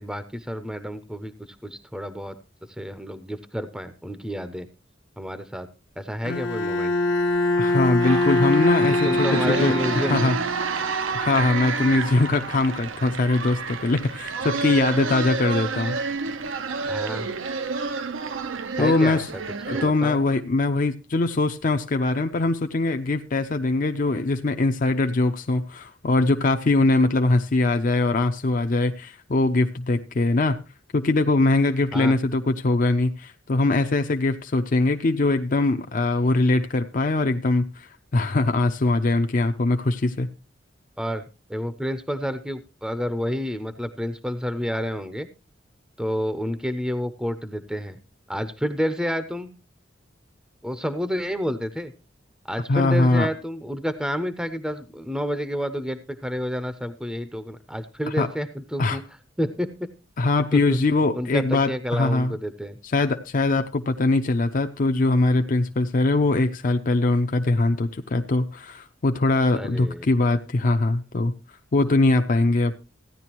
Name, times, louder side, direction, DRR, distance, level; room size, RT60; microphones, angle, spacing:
voice 1, 0.0-2.4 2.7-4.7 5.2-5.7 6.0-7.0 8.8-10.4 16.9-17.3 18.8-19.4 19.7-20.2 31.9-32.1 41.0-41.2 41.5-45.3 46.0-48.0 48.3-49.5 50.6-51.9 52.4-59.1 59.4-59.9 60.5-60.8 61.1-62.8 69.5-70.1, equal, 5° right, 0.5 m, -29 dB
Bowed string instrument, 6.2-10.8, left 2 dB, 70° left, 0.9 m, -23 dB
voice 2, 7.6-9.8 10.1-10.4 11.1-16.0 18.8-19.3 19.7-30.6 30.9-40.3 52.7-53.3 58.2-58.3 58.8-59.0 60.2-62.3 62.9-71.3 71.7-72.7, left 2 dB, 45° left, 0.5 m, -22 dB
sound 1, 8.0-19.9, right 4 dB, 90° right, 0.8 m, -29 dB
15.5 x 10.5 x 2.9 m
head